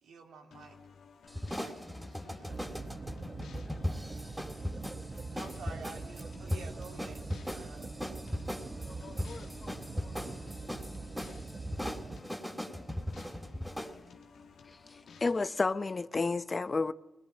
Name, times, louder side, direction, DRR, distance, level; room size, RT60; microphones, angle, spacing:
voice 1, 0.0-0.8 1.6-2.6 5.3-8.2, right 4 dB, 80° right, 3.2 m, -50 dB
sound 1, 0.5-16.0, left 5 dB, 75° left, 1.9 m, -56 dB
sound 2, 1.3-14.0, left 1 dB, 5° right, 3.4 m, -39 dB
sound 3, 2.5-12.2, right 3 dB, 45° right, 1.4 m, -43 dB
voice 2, 8.7-10.8, left 5 dB, 60° left, 1.4 m, -53 dB
voice 3, 14.9-16.9, left 3 dB, 40° left, 1.1 m, -31 dB
21.5 x 21.0 x 9.1 m
supercardioid pair, 40°, 0 cm